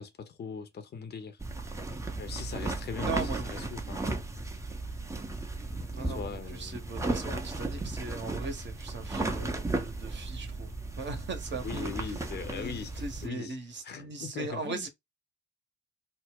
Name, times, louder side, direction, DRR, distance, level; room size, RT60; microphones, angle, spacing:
voice 1, 0.0-1.4 2.2-4.2 5.9-6.8 11.6-13.6 13.8-14.9, left 6 dB, 30° left, 0.7 m, -40 dB
sound 1, 1.4-13.3, right 2 dB, 10° right, 0.6 m, -35 dB
voice 2, 3.0-3.7 5.9-11.9 12.5-14.9, right 3 dB, 35° right, 0.9 m, -39 dB
2.5 x 2.1 x 3.6 m
figure-of-eight pair, 45°, 32 cm